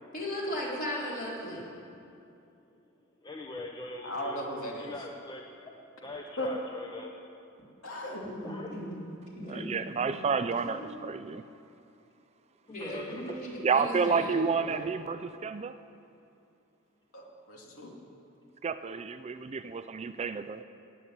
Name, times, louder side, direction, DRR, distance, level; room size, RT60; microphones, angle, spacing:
voice 1, 0.1-1.7 8.2-10.2 10.6-11.0 12.7-14.9, equal, 40° left, -5 dB, 4.1 m, -37 dB
voice 2, 3.2-4.4 4.8-7.3 8.4-8.8 12.6-13.4, left 2 dB, 20° left, 1 dB, 0.9 m, -42 dB
voice 3, 4.0-4.9 6.4-6.5 7.8-8.3 17.1-17.9, left 1 dB, 75° left, -1 dB, 2.7 m, -36 dB
voice 4, 9.4-11.4 13.6-15.8 18.6-20.6, right 5 dB, 30° right, 11 dB, 0.4 m, -30 dB
18.0 x 7.4 x 9.5 m, 2.6 s
head